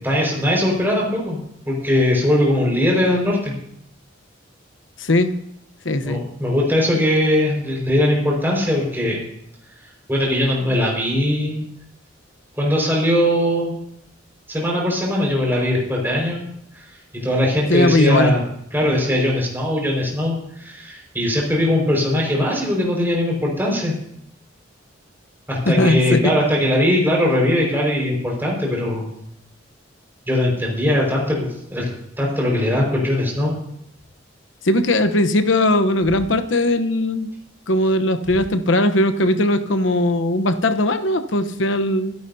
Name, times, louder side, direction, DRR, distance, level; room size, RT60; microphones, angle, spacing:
voice 1, 0.0-1.4 1.7-3.5 6.0-9.2 10.1-11.6 12.5-13.7 14.5-16.5 16.7-16.9 17.1-18.4 18.7-23.9 25.5-29.1 30.3-31.8 32.2-33.5, left 1 dB, 10° right, -2 dB, 5.0 m, -20 dB
voice 2, 5.0-5.4 5.8-6.2 17.7-18.3 25.6-26.3 34.6-37.3 37.7-42.1, left 1 dB, 70° left, 10 dB, 1.0 m, -19 dB
25.0 x 11.0 x 2.8 m, 0.73 s
head